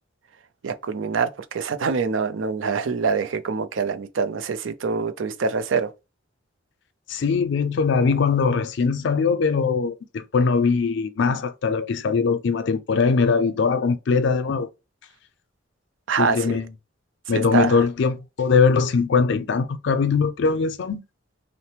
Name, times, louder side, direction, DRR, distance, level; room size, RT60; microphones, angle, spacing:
voice 1, 0.6-5.9 16.1-16.6 17.3-17.8, right 5 dB, 80° right, 0.5 m, -25 dB
voice 2, 7.1-14.7 16.2-16.7 17.3-21.0, left 5 dB, 65° left, 0.4 m, -21 dB
5.5 x 2.1 x 3.3 m
head